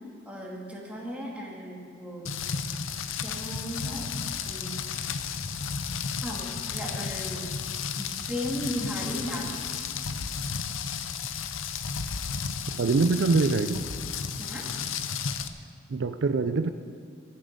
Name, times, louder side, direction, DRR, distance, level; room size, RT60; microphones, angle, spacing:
voice 1, 0.3-2.4 3.2-4.1 4.5-4.8 6.2-7.6 8.0-9.6 14.4-14.7, equal, 5° right, -3 dB, 2.2 m, -36 dB
Rain, 2.2-15.5, left 6 dB, 85° left, 0.7 m, -33 dB
voice 2, 12.8-13.8 15.9-16.7, right 4 dB, 60° right, 10 dB, 0.4 m, -24 dB
22.5 x 7.6 x 5.2 m, 2.1 s
head